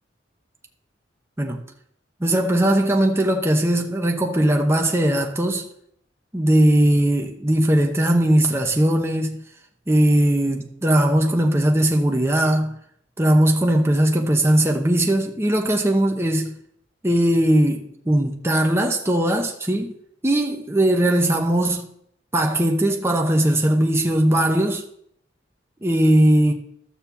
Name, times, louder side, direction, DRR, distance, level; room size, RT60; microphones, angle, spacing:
voice 1, 2.2-5.7 6.3-9.4 9.9-12.7 13.2-16.5 17.0-20.0 20.2-21.9 22.3-24.8 25.8-26.5, right 1 dB, 15° right, 1.0 m, -19 dB
12.5 x 4.4 x 7.1 m
head